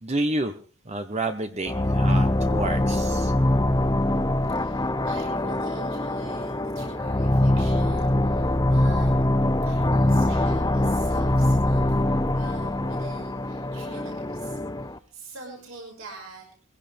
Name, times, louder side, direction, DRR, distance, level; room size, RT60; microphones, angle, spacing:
voice 1, 0.0-0.5 0.9-3.3, right 2 dB, 30° right, 8 dB, 1.0 m, -29 dB
sound 1, 1.6-15.0, left 1 dB, 15° left, 0.7 m, -23 dB
voice 2, 4.4-9.1 9.6-16.5, right 3 dB, 70° right, 0 dB, 5.9 m, -44 dB
22.5 x 16.0 x 3.5 m, 0.38 s
head